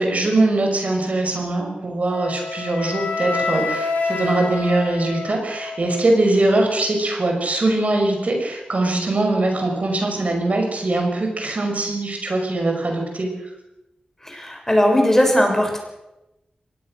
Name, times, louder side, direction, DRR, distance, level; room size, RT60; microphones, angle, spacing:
voice 1, 0.0-13.5, right 2 dB, 60° right, 3 dB, 5.7 m, -21 dB
Wind instrument woodwind instrument, 2.1-6.1, left 4 dB, 90° left, 7.1 m, -27 dB
voice 2, 14.2-15.8, equal, 15° left, 2 dB, 6.5 m, -18 dB
23.0 x 18.0 x 6.5 m, 0.94 s
wide cardioid pair, 60°, 3 cm